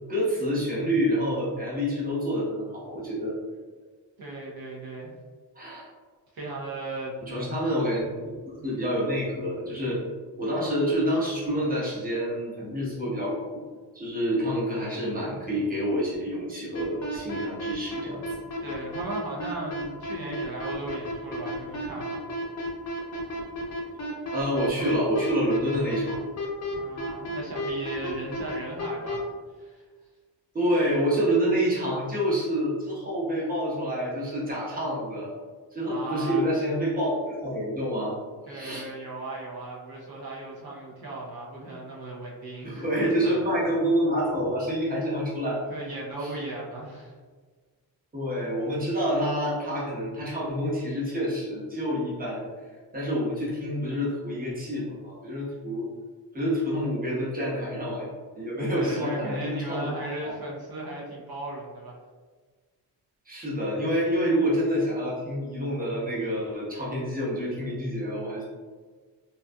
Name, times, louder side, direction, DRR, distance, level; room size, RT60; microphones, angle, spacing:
voice 1, 0.1-3.3 5.5-5.8 7.2-8.0 8.4-10.0 10.4-13.6 13.9-18.2 24.3-26.2 30.5-35.3 35.7-38.1 38.5-38.9 42.6-45.6 46.2-46.4 48.1-52.5 52.9-55.9 56.3-58.1 58.3-60.3 63.2-68.4, equal, 20° right, -7 dB, 1.0 m, -27 dB
voice 2, 4.2-5.2 5.7-5.8 6.3-7.1 8.6-8.8 18.6-22.2 26.7-29.3 29.6-29.8 35.9-36.4 38.5-42.9 43.2-43.3 44.8-45.0 45.7-47.2 58.7-62.0, right 2 dB, 60° right, -5 dB, 0.7 m, -37 dB
sound 1, 16.7-29.2, equal, 40° left, 0.6 m, -32 dB
2.6 x 2.3 x 2.2 m, 1.5 s
cardioid pair, 100°, 43 cm